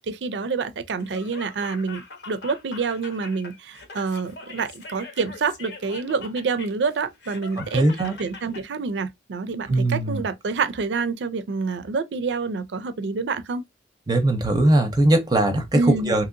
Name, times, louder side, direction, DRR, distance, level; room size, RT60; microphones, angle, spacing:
voice 1, 0.0-7.8 8.2-13.6 15.7-16.1, right 4 dB, 80° right, 0.4 m, -27 dB
Laughter, 0.9-8.6, left 3 dB, 65° left, 0.8 m, -42 dB
voice 2, 7.6-8.2 9.7-10.2 14.1-16.3, right 1 dB, 25° right, 0.5 m, -20 dB
2.8 x 2.8 x 2.5 m
head